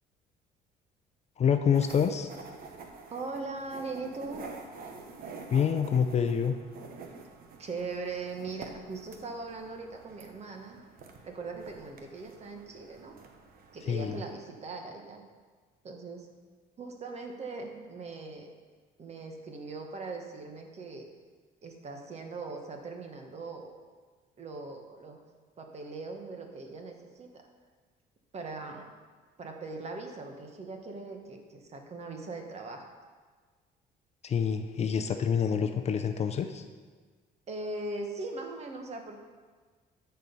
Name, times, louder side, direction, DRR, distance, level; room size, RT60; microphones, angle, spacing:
voice 1, 1.4-2.3 5.5-6.5 13.9-14.1 34.2-36.6, left 7 dB, 40° left, 8 dB, 0.6 m, -27 dB
sound 1, 1.7-14.3, right 4 dB, 60° right, 1.1 m, -48 dB
voice 2, 3.1-4.5 7.6-10.8 11.2-13.1 13.7-15.2 15.8-16.3 16.8-18.5 19.0-21.1 21.6-23.7 24.4-25.2 25.6-27.5 28.3-28.9 29.4-32.9 37.5-39.2, right 3 dB, 40° right, 3 dB, 1.5 m, -40 dB
13.5 x 4.6 x 5.4 m, 1.5 s
cardioid pair, 110°, 17 cm